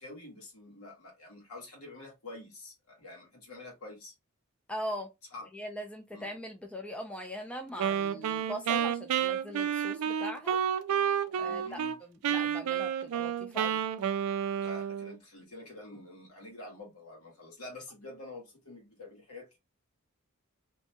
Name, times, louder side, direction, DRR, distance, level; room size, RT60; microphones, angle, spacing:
voice 1, 0.0-4.1 5.3-5.5 6.1-6.2 11.4-12.0 14.6-19.6, left 2 dB, 80° left, 1.3 m, -47 dB
voice 2, 4.7-5.1 5.5-10.6 11.4-11.8 12.3-13.8, equal, 5° left, 0.4 m, -40 dB
Wind instrument woodwind instrument, 7.8-12.0 12.2-15.2, right 8 dB, 80° right, 0.3 m, -30 dB
2.7 x 2.2 x 2.8 m
head